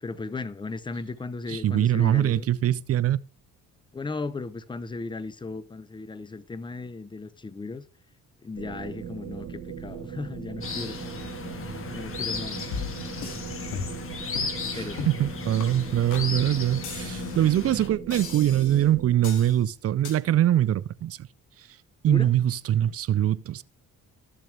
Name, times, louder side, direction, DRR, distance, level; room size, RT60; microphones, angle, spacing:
voice 1, 0.0-2.5 3.9-7.9 8.4-11.0 11.9-12.6 14.7-15.2 22.1-22.3, left 3 dB, 15° left, 0.7 m, -36 dB
voice 2, 1.5-3.2 14.7-21.3 21.6-21.7 22.0-23.6, right 12 dB, 50° right, 0.5 m, -23 dB
sound 1, 8.5-19.1, right 8 dB, 70° right, 1.8 m, -39 dB
sound 2, 10.6-17.9, left 5 dB, 45° left, 1.7 m, -35 dB
sound 3, 12.7-13.4 13.7-14.1 14.3-14.6 15.0-15.2 15.6-15.7 16.1-16.3 16.8-17.5 18.1-18.8 19.2-19.5 20.0-20.2, left 6 dB, 85° left, 2.3 m, -36 dB
13.5 x 7.1 x 3.3 m
cardioid pair, 90°, 30 cm